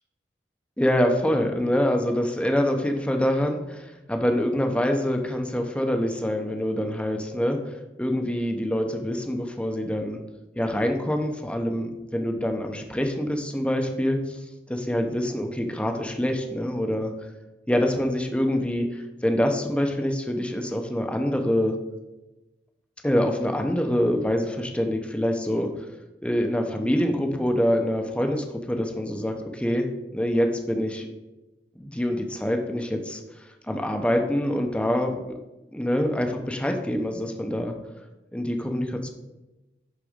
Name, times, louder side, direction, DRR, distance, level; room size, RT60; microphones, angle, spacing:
voice 1, 0.8-10.2 10.6-14.4 14.7-17.1 17.7-21.8 23.0-25.7 26.2-29.9 30.1-31.1 31.8-35.4 35.7-37.7 38.3-39.1, equal, 5° left, 4 dB, 0.9 m, -25 dB
11.5 x 4.2 x 5.1 m, 1.0 s
head